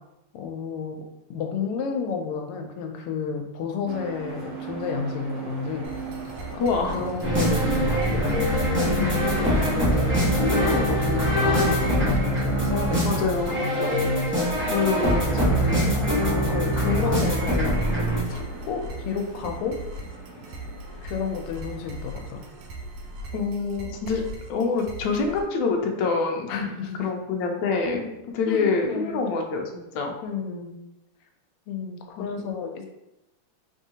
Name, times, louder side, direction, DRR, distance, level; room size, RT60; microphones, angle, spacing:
voice 1, 0.3-1.0 1.3-5.9 6.5-8.3 9.3-14.3 15.5-15.9 16.3-19.8 21.0-22.4 26.5-27.1 28.5-29.2 30.2-30.7 31.7-32.9, left 5 dB, 90° left, 4 dB, 1.5 m, -31 dB
sound 1, 3.9-23.4, right 3 dB, 55° right, 1.1 m, -40 dB
sound 2, 5.8-25.4, right 1 dB, 80° right, 1.5 m, -39 dB
voice 2, 6.6-7.0 8.9-9.6 13.0-13.6 14.7-15.6 23.3-24.2 24.5-26.5 27.0-28.1 28.3-30.1 32.1-32.6, left 4 dB, 70° left, 3 dB, 1.1 m, -26 dB
sound 3, 7.2-18.2, equal, 10° right, 0.5 m, -23 dB
3.6 x 3.5 x 2.8 m, 0.93 s
omnidirectional pair, 2.4 m